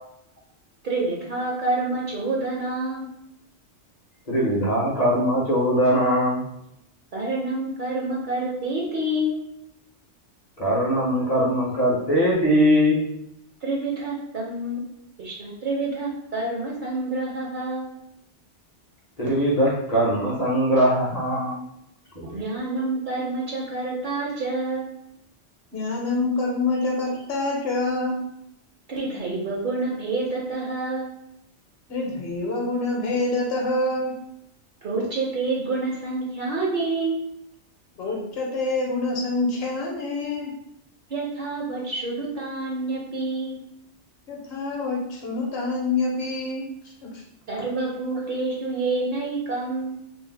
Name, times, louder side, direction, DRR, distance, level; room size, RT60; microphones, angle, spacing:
voice 1, 0.8-3.1 7.1-9.4 13.6-14.8 15.2-17.9 22.2-24.9 28.9-31.1 34.8-37.2 41.1-43.6 47.5-50.0, right 2 dB, 55° right, -3 dB, 0.6 m, -28 dB
voice 2, 4.3-6.4 10.6-13.0 19.2-21.6, equal, 45° left, -6 dB, 0.6 m, -21 dB
voice 3, 25.7-28.2 31.9-34.1 38.0-40.5 44.3-46.6 47.0-47.2, left 2 dB, 60° left, -2 dB, 0.9 m, -26 dB
2.5 x 2.0 x 3.2 m, 0.78 s
omnidirectional pair, 1.2 m